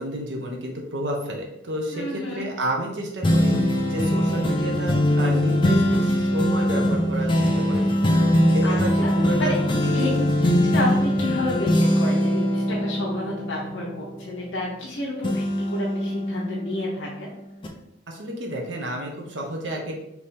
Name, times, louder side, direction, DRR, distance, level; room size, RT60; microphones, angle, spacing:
voice 1, 0.0-3.6 3.8-9.6 9.8-10.1 10.4-10.5 18.1-19.9, right 1 dB, 65° right, 0 dB, 0.9 m, -31 dB
voice 2, 1.9-2.4 8.6-9.6 9.9-10.3 10.7-17.3, left 1 dB, 75° left, -4 dB, 0.8 m, -30 dB
sound 1, 3.2-14.9 15.2-17.1 17.6-17.7, left 1 dB, 25° left, 0.4 m, -22 dB
3.4 x 3.0 x 4.2 m, 0.82 s
head